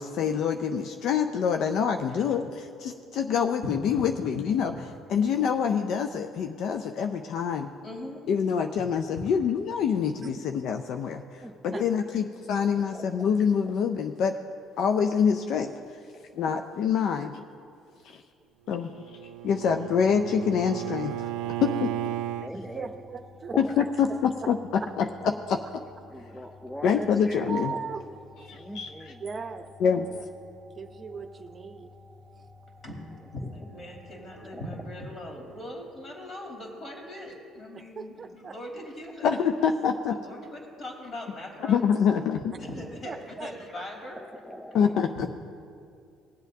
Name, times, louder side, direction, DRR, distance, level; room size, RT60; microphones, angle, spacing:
voice 1, 0.0-2.5 2.8-4.7 5.1-7.7 8.3-14.4 14.8-15.8 16.4-17.4 18.0-18.2 18.7-18.9 19.4-21.3 21.6-21.9 23.6-24.6 25.0-25.1 25.5-25.6 26.8-27.7 28.5-29.1 29.8-30.1 39.2-40.2 41.6-42.5 44.7-45.3, left 7 dB, 65° left, 6 dB, 0.4 m, -26 dB
voice 2, 3.6-4.1 4.7-4.8 7.8-8.2 8.8-8.9 9.1-9.3 32.8-33.0 33.3-39.5 40.1-41.9 42.4-44.2, left 1 dB, 45° left, -1 dB, 2.9 m, -40 dB
voice 3, 4.8-5.3 11.4-11.8 12.9-13.1 13.6-13.7 22.4-22.9 23.5-23.8 25.2-25.3 26.1-27.8 28.5-29.2 34.5-34.6 44.2-45.3, left 1 dB, 5° left, 5 dB, 0.6 m, -40 dB
voice 4, 16.9-17.3 22.5-23.8 24.4-24.5 27.5-28.0 29.2-29.6 29.9-30.2 30.7-31.9 32.3-32.5 37.9-38.6 43.0-43.5, right 5 dB, 40° right, 6 dB, 0.7 m, -38 dB
Bowed string instrument, 18.7-22.5, right 14 dB, 80° right, 0.3 m, -34 dB
sound 1, 19.7-35.3, left 3 dB, 20° right, 1.1 m, -52 dB
19.0 x 8.1 x 2.7 m, 2.4 s
supercardioid pair, 70°, 0 cm